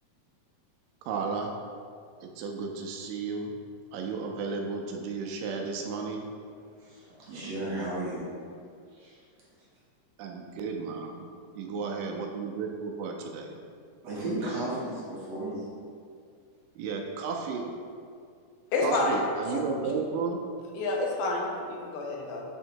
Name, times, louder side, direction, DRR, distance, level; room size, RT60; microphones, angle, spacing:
voice 1, 1.1-1.5 2.2-3.6 3.9-6.3 10.2-11.2 11.6-13.5 16.8-17.7 18.8-20.4, right 4 dB, 80° right, 2 dB, 2.2 m, -33 dB
voice 2, 6.8-8.3 9.0-9.1 14.0-15.6, right 1 dB, 60° right, -7 dB, 2.1 m, -34 dB
voice 3, 18.7-19.2 19.5-19.6 20.7-22.4, left 2 dB, 80° left, -1 dB, 2.4 m, -29 dB
7.1 x 3.6 x 4.5 m, 2.3 s
omnidirectional pair, 4.0 m